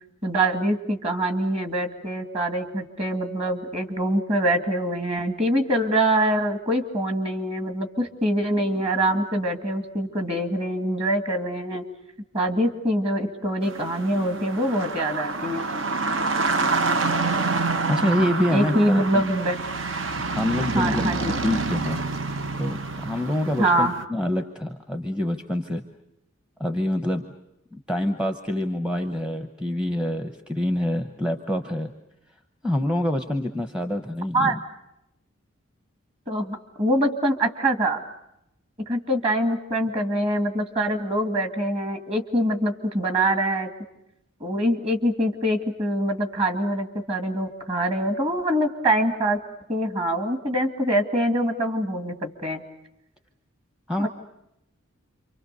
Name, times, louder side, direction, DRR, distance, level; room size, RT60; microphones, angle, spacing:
voice 1, 0.2-11.8 12.3-15.7 18.5-19.6 20.7-21.4 23.6-23.9 34.3-34.6 36.3-38.0 38.9-43.7 44.4-49.4 49.7-52.6 54.0-54.1, right 1 dB, 30° right, 7 dB, 2.2 m, -24 dB
sound 1, 13.6-24.0, right 3 dB, 65° right, 1.1 m, -27 dB
voice 2, 17.9-19.2 20.2-22.0 22.6-25.8 26.6-27.3 27.7-31.9 32.6-34.6 53.9-54.1, left 1 dB, 5° right, 5 dB, 0.9 m, -26 dB
28.0 x 25.0 x 6.8 m, 0.83 s
head